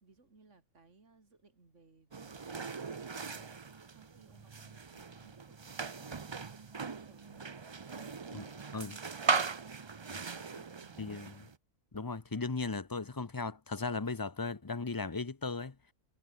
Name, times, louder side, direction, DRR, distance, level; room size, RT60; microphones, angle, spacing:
voice 1, 0.0-3.5 3.9-7.5 7.9-9.5 10.1-11.0, right 3 dB, 60° right, 3.5 m, -63 dB
sound 1, 2.1-11.6, right 5 dB, 30° right, 0.5 m, -39 dB
voice 2, 11.0-11.5 11.9-15.8, left 4 dB, 20° left, 0.7 m, -37 dB
omnidirectional pair, 1.4 m